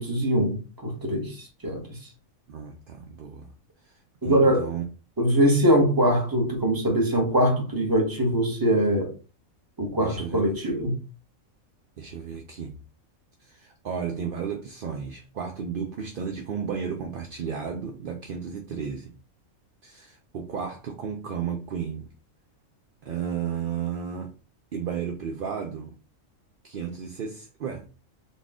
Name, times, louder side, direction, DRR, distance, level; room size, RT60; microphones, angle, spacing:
voice 1, 0.0-2.1 4.2-4.7 5.2-9.1 9.8-11.0, equal, 15° right, 1.0 m, -23 dB
voice 2, 2.5-3.5 3.8-4.8 10.0-10.4 12.0-12.8 13.4-19.1 19.8-22.1 23.0-24.3 24.7-25.9 26.6-27.9, right 7 dB, 60° right, 0.6 m, -33 dB
4.2 x 2.4 x 3.5 m
omnidirectional pair, 1.5 m